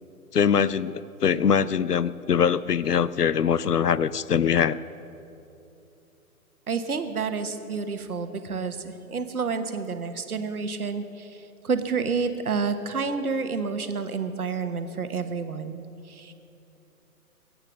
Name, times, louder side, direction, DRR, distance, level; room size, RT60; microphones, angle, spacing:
voice 1, 0.3-4.8, left 7 dB, 85° left, 18 dB, 0.6 m, -23 dB
voice 2, 6.7-15.8 16.1-16.3, right 5 dB, 70° right, 8 dB, 1.3 m, -29 dB
22.0 x 8.9 x 6.3 m, 2.8 s
figure-of-eight pair, 125°, 46 cm